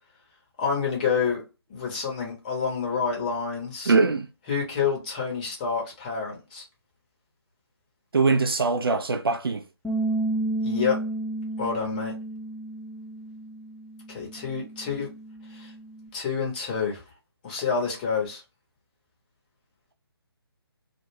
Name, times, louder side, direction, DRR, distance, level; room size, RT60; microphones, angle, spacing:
voice 1, 0.6-1.4 1.7-3.9 4.5-6.6 10.6-11.0 11.6-12.1 14.1-15.1 15.5-15.7 16.1-17.0 17.4-18.4, left 6 dB, 20° left, 0.8 m, -28 dB
voice 2, 3.9-4.3 8.1-9.6, right 4 dB, 60° right, 0.5 m, -22 dB
Bass guitar, 9.8-16.1, right 2 dB, ahead, 0.4 m, -32 dB
2.3 x 2.2 x 3.2 m
figure-of-eight pair, 145°, 14 cm